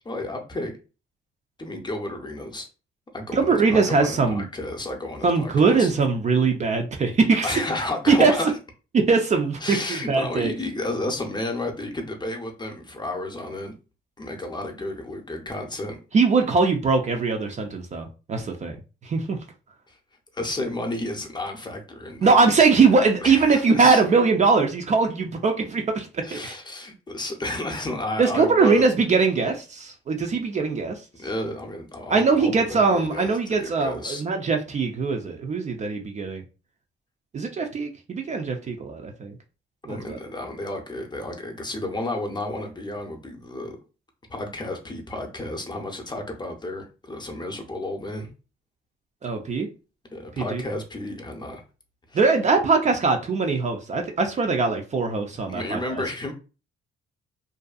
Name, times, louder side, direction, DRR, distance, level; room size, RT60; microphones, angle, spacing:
voice 1, 0.0-0.7 1.6-2.7 3.1-5.9 7.4-8.5 9.6-13.7 14.2-16.0 19.9-20.0 20.3-23.0 23.2-24.0 26.2-28.8 31.2-34.2 39.9-43.8 44.3-48.3 50.1-51.6 52.1-52.2 55.5-56.3, left 2 dB, 20° left, 0.6 m, -32 dB
voice 2, 3.3-4.5 5.2-7.5 8.1-8.3 8.9-10.5 16.1-18.8 19.0-19.4 22.2-26.6 28.2-31.0 32.1-36.4 37.3-39.3 39.9-40.2 49.2-49.7 50.4-50.6 52.1-55.8, right 4 dB, 35° right, 0.4 m, -21 dB
2.6 x 2.3 x 2.3 m
cardioid pair, 90°, 20 cm